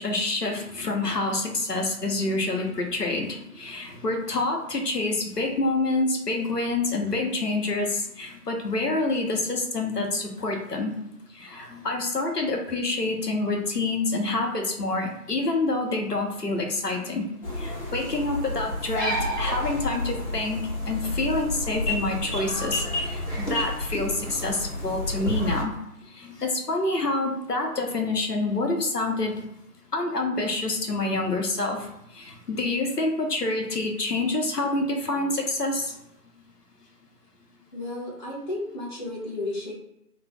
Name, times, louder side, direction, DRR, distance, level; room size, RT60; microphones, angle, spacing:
voice 1, 0.0-10.9 11.3-17.2 17.5-25.8 26.1-29.4 29.9-31.9 32.1-36.0, left 2 dB, 90° left, 2 dB, 1.0 m, -27 dB
sound 1, 17.4-25.6, left 1 dB, 45° left, 1.2 m, -30 dB
voice 2, 37.7-39.7, left 2 dB, 30° left, -5 dB, 0.8 m, -33 dB
3.1 x 2.0 x 3.4 m, 0.85 s
figure-of-eight pair, 145°, 46 cm